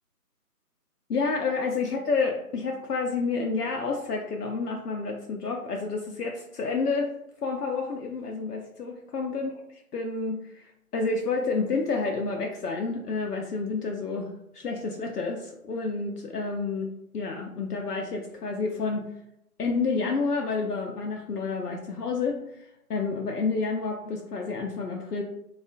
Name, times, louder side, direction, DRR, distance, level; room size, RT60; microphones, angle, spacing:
voice 1, 1.1-7.1 7.4-9.5 9.9-19.1 19.6-22.5 22.9-25.2, left 4 dB, 75° left, 1 dB, 0.5 m, -29 dB
2.4 x 2.2 x 2.4 m, 0.80 s
figure-of-eight pair, 160°, 47 cm